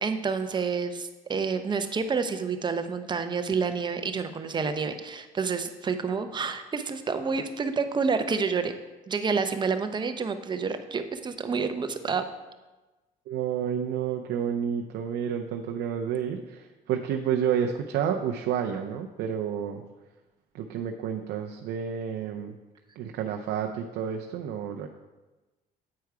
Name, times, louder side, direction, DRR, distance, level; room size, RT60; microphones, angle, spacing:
voice 1, 0.0-8.7 9.1-12.2, right 5 dB, 25° right, 8 dB, 0.6 m, -29 dB
voice 2, 13.3-19.8 20.5-22.5 23.0-24.9, right 8 dB, 75° right, 3 dB, 0.5 m, -30 dB
8.5 x 4.6 x 4.7 m, 1.2 s
cardioid pair, 110°, 17 cm